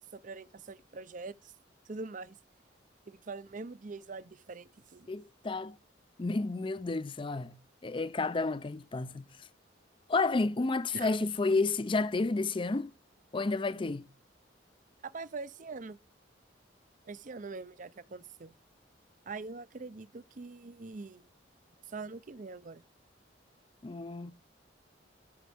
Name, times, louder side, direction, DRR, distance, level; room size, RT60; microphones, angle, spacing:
voice 1, 0.0-1.5 1.9-2.4 3.1-5.1 10.9-11.1 15.0-16.0 17.1-18.5 19.3-21.3 21.9-22.8, right 3 dB, 45° right, 0.6 m, -43 dB
voice 2, 5.1-5.8 6.2-9.3 10.1-12.9 13.3-14.1 23.8-24.3, left 3 dB, 25° left, 0.5 m, -31 dB
12.5 x 6.1 x 3.5 m
head